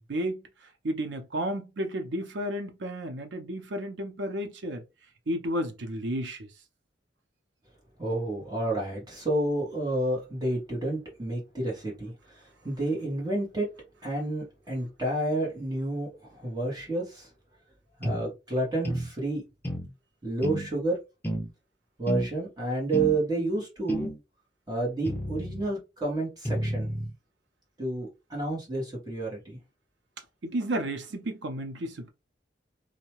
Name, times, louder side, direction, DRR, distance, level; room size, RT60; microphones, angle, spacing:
voice 1, 0.1-0.4 0.8-4.8 5.3-6.5 30.4-32.1, right 1 dB, 80° right, 0.7 m, -32 dB
voice 2, 8.0-12.4 12.6-13.7 14.0-17.3 18.0-19.4 20.2-21.0 22.0-24.1 24.7-26.9 27.8-29.6, right 2 dB, 25° right, 1.2 m, -30 dB
sound 1, 18.0-18.2 18.8-19.1 19.6-19.9 20.4-20.7 21.2-21.5 22.1-22.3 22.9-23.2 23.9-24.2 25.0-25.7 26.4-27.1, equal, 10° left, 0.5 m, -31 dB
2.7 x 2.2 x 3.0 m
head